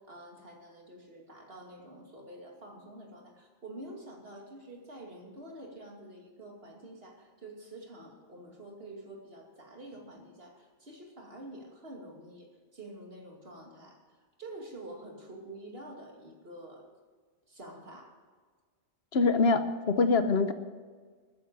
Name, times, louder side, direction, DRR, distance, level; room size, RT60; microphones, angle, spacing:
voice 1, 0.0-14.0 14.4-16.9 17.5-18.2, right 1 dB, 60° right, 0 dB, 2.8 m, -47 dB
voice 2, 19.1-20.5, left 3 dB, 65° left, 10 dB, 1.3 m, -24 dB
13.5 x 10.0 x 6.9 m, 1.5 s
omnidirectional pair, 1.1 m